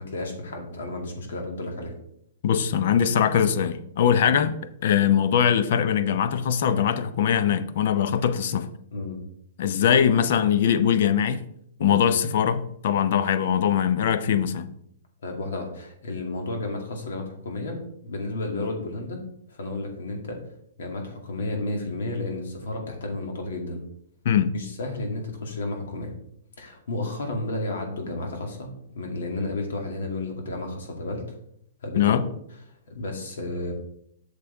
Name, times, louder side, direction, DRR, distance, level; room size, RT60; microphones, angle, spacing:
voice 1, 0.0-1.9 4.2-4.3 8.9-9.2 11.8-12.0 15.2-19.2 19.5-20.4 20.8-23.8 24.5-26.1 26.6-31.2 31.8-32.2 32.7-33.7, left 2 dB, 80° left, 2.4 m, -32 dB
voice 2, 2.4-4.6 4.8-8.7 9.6-11.4 11.8-14.7 24.2-24.5 32.0-32.2, left 8 dB, 60° left, 0.7 m, -21 dB
8.3 x 6.7 x 3.5 m
hypercardioid pair, 150°, 0 cm